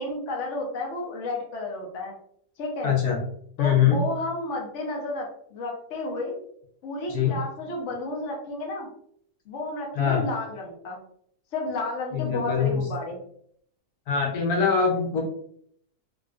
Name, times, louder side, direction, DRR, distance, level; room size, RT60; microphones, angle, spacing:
voice 1, 0.0-2.1 2.6-2.9 3.6-6.4 6.8-8.9 9.5-11.0 11.5-13.2, left 2 dB, 55° left, -1 dB, 1.0 m, -32 dB
voice 2, 2.8-3.2 3.6-4.0 7.1-7.3 9.9-10.2 12.1-12.9 14.1-15.3, left 7 dB, 80° left, -1 dB, 1.3 m, -23 dB
3.7 x 2.1 x 2.4 m, 0.65 s
omnidirectional pair, 1.6 m